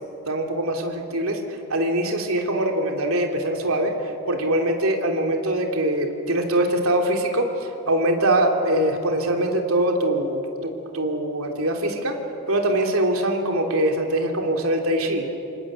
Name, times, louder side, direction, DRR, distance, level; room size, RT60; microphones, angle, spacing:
voice 1, 0.3-12.1 12.5-15.3, right 1 dB, 80° right, 3 dB, 3.3 m, -23 dB
27.0 x 26.0 x 8.0 m, 2.8 s
head